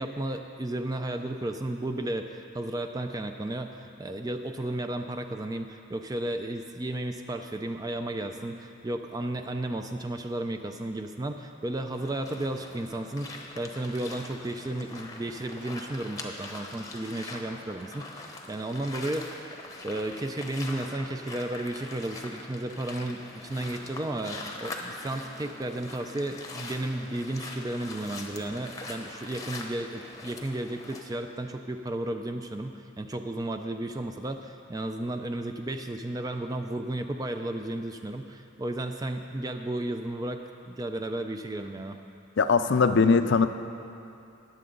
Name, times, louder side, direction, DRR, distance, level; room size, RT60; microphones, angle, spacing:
voice 1, 0.0-19.4 19.8-42.0, right 1 dB, 20° right, 6 dB, 0.4 m, -33 dB
sound 1, 11.9-31.0, left 2 dB, 15° left, 0.8 m, -42 dB
voice 2, 42.4-43.5, left 5 dB, 55° left, 10 dB, 0.5 m, -20 dB
20.5 x 7.7 x 3.8 m, 2.7 s
head